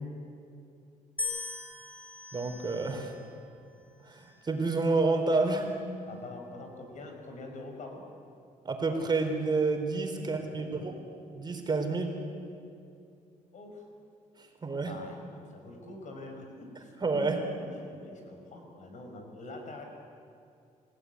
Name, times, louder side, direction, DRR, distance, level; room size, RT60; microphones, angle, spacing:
sound 1, 1.2-3.4 4.2-4.7, left 3 dB, 10° left, 6.1 m, -40 dB
voice 1, 2.3-3.1 4.1-5.7 8.6-10.9 11.3-12.2 14.6-14.9 17.0-17.4, right 3 dB, 30° right, 4 dB, 3.9 m, -29 dB
voice 2, 6.1-8.0 10.2-11.0 13.5-13.9 14.8-16.9 17.2-19.8, left 2 dB, 60° left, 3 dB, 5.9 m, -46 dB
28.0 x 17.0 x 9.7 m, 2.4 s
cardioid pair, 105°, 14 cm